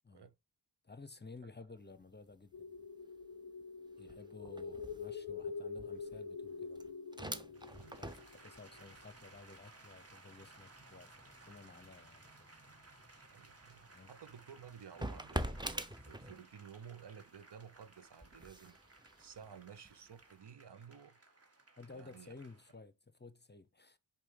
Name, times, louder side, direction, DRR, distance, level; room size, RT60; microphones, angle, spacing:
voice 1, 0.8-2.8 4.0-6.8 7.4-12.5 13.9-14.1 19.5-19.6 21.8-24.0, left 3 dB, 20° left, 0.8 m, -55 dB
sound 1, 1.8-2.1 2.4-16.8 17.2-20.2, right 1 dB, 10° right, 0.8 m, -47 dB
sound 2, 2.5-9.0, left 5 dB, 55° left, 0.6 m, -46 dB
sound 3, 7.5-22.8, right 2 dB, 30° right, 1.6 m, -61 dB
voice 2, 13.3-21.2 21.9-22.3, right 7 dB, 60° right, 0.9 m, -54 dB
5.0 x 4.5 x 4.9 m
cardioid pair, 40°, 47 cm